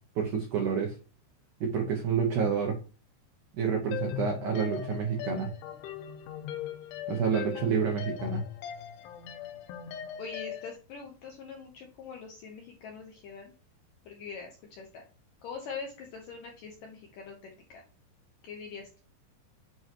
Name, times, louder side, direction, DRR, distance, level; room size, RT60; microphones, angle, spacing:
voice 1, 0.2-1.0 1.6-2.8 3.5-5.5 7.1-8.4, right 6 dB, 80° right, 1 dB, 1.7 m, -28 dB
sound 1, 3.9-10.8, left 10 dB, 90° left, 3.2 m, -39 dB
voice 2, 10.2-13.5 14.1-15.0 15.4-17.8 18.4-19.0, left 5 dB, 75° left, 1 dB, 2.0 m, -43 dB
8.5 x 4.7 x 3.0 m, 0.36 s
omnidirectional pair, 5.3 m